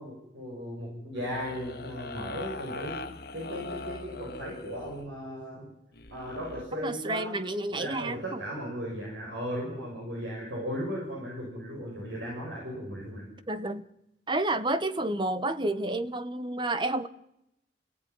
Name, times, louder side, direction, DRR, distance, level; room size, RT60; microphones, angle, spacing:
voice 1, 0.0-3.0 3.3-5.7 6.1-7.4 7.7-13.3, equal, 80° right, -2 dB, 7.2 m, -36 dB
sound 1, 1.1-5.1 5.9-6.6, left 3 dB, 55° left, 1.9 m, -41 dB
voice 2, 6.8-8.4 13.5-13.8 14.3-17.1, right 2 dB, 25° right, 12 dB, 1.1 m, -30 dB
29.5 x 16.5 x 9.8 m, 0.86 s
head